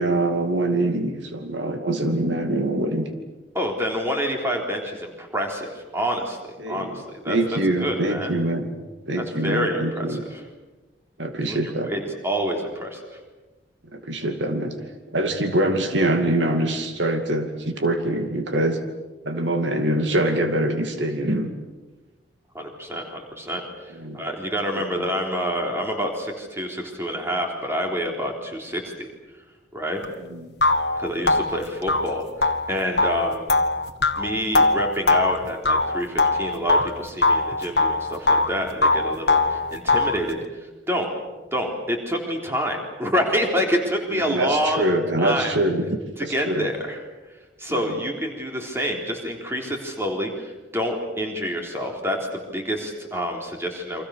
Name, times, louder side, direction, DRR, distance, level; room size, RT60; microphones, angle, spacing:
voice 1, 0.0-3.1 6.6-8.8 9.1-10.2 11.2-11.9 13.9-14.8 15.1-18.8 19.2-21.5 23.9-24.2 25.0-25.1 30.3-30.5 31.2-31.4 44.1-46.7 47.7-48.0, right 1 dB, 75° right, 6 dB, 2.5 m, -24 dB
voice 2, 3.5-6.4 6.7-8.4 9.2-10.4 11.5-13.0 22.5-23.6 24.1-29.1 29.7-30.0 31.0-33.6 34.2-40.4 40.9-41.1 41.5-45.6 46.2-47.0 47.6-54.0, equal, 15° right, 1 dB, 3.7 m, -27 dB
sound 1, 30.0-30.1 30.6-36.9 37.2-38.5 38.8-40.2, left 2 dB, 55° left, 1.5 m, -21 dB
29.0 x 25.5 x 6.6 m, 1.2 s
head